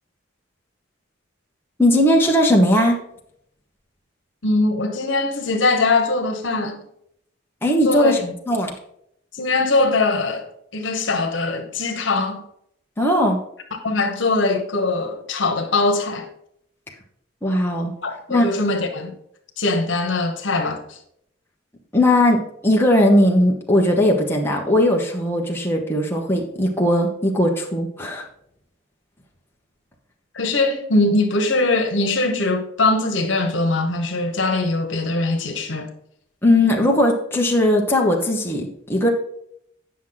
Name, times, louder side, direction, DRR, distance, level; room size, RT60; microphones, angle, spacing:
voice 1, 1.8-3.0 7.6-8.7 13.0-13.4 17.4-17.9 18.3-18.5 21.9-28.2 36.4-39.1, left 1 dB, 10° left, 1.1 m, -18 dB
voice 2, 4.4-6.8 7.8-8.1 9.3-10.4 10.7-12.4 13.8-16.3 18.0-19.1 19.6-21.0 30.3-35.9, left 2 dB, 75° left, 1.3 m, -21 dB
9.3 x 6.1 x 3.9 m
head